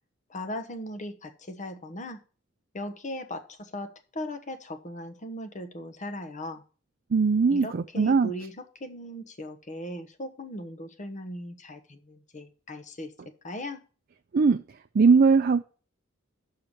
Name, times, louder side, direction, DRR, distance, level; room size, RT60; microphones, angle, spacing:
voice 1, 0.3-2.2 2.7-6.6 7.5-8.5 8.8-13.1 13.4-13.8, left 1 dB, 40° left, 1.1 m, -38 dB
voice 2, 7.1-8.3 14.3-14.6 14.9-15.6, right 5 dB, 50° right, 0.4 m, -20 dB
6.7 x 5.7 x 7.1 m
head